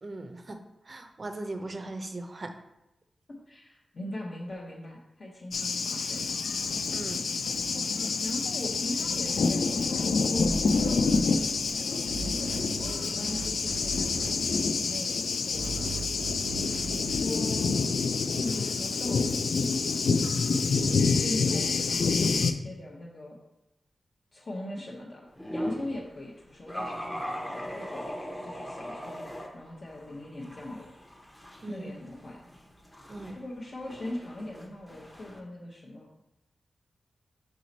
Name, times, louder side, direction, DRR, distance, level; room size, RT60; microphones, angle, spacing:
voice 1, 0.0-0.6 0.9-2.5 6.9-7.2 31.6-31.9 33.1-33.4, right 2 dB, 30° right, 6 dB, 0.5 m, -38 dB
voice 2, 3.3-6.4 8.2-10.6 11.1-16.0 16.8-17.7 18.4-19.4 20.5-23.4 24.3-28.0 28.4-29.3 29.5-30.9 31.7-32.4 33.3-36.1, left 1 dB, 45° left, -3 dB, 0.8 m, -40 dB
Thunder, 5.5-22.5, left 4 dB, 70° left, 0.4 m, -27 dB
sound 1, 10.4-11.8 12.1-14.9 15.5-17.2, right 4 dB, 80° right, 0.4 m, -39 dB
sound 2, 25.4-26.0 26.7-29.5 29.9-35.4, equal, 10° left, 0.7 m, -39 dB
5.1 x 4.6 x 4.0 m, 0.88 s
wide cardioid pair, 170°, 0 cm